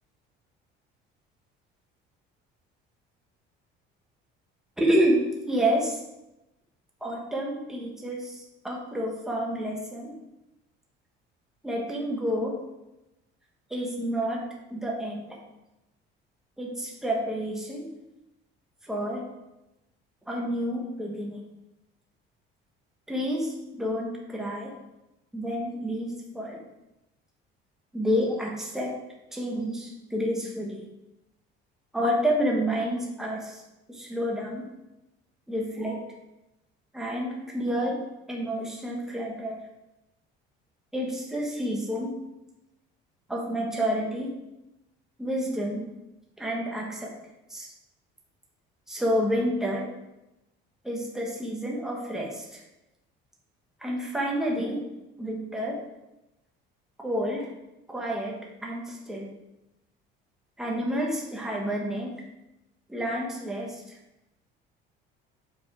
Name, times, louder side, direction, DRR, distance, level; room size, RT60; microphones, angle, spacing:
voice 1, 4.8-6.0 7.0-10.2 11.6-12.6 13.7-15.4 16.6-17.9 18.8-19.3 20.3-21.4 23.1-24.7 25.3-26.6 27.9-28.9 29.3-30.8 31.9-33.6 33.9-34.7 35.5-36.0 36.9-38.0 38.3-39.6 40.9-42.2 43.3-44.3 45.2-45.8 46.4-47.1 47.5-47.7 48.9-49.9 50.8-52.6 53.8-54.8 55.2-55.8 57.0-57.5 57.9-59.3 60.6-62.1 62.9-63.8, equal, ahead, -2 dB, 1.2 m, -29 dB
7.3 x 5.1 x 4.8 m, 0.96 s
cardioid pair, 170°, 21 cm